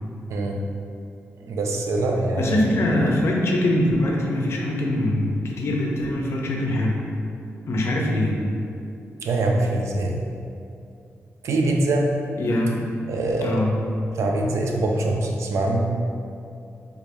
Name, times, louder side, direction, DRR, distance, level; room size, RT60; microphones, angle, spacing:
voice 1, 1.4-3.1 9.2-10.2 11.4-12.1 13.1-13.6 14.2-15.9, right 2 dB, 85° right, 1 dB, 0.4 m, -23 dB
voice 2, 2.4-7.0 7.6-8.4 12.4-12.9 13.4-13.8, left 1 dB, 65° left, -1 dB, 0.5 m, -23 dB
3.5 x 2.5 x 3.4 m, 2.6 s
wide cardioid pair, 165°, 5 cm